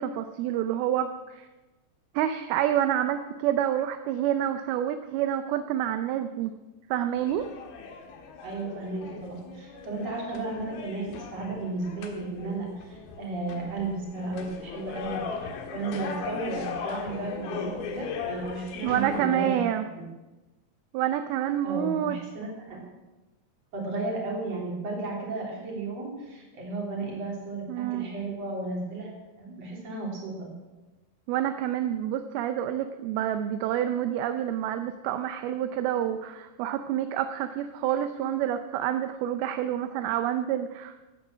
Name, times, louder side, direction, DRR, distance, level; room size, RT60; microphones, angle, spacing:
voice 1, 0.0-1.5 2.1-6.5 6.9-7.5 18.8-19.8 20.9-22.2 27.7-28.1 31.3-41.0, right 11 dB, 80° right, 8 dB, 2.4 m, -28 dB
sound 1, 7.2-19.3, left 6 dB, 70° left, 3.2 m, -39 dB
voice 2, 8.4-19.7 19.9-20.1 21.6-22.8 23.7-30.5, right 2 dB, 40° right, -2 dB, 4.2 m, -34 dB
16.0 x 9.5 x 6.2 m, 1.1 s
omnidirectional pair, 4.7 m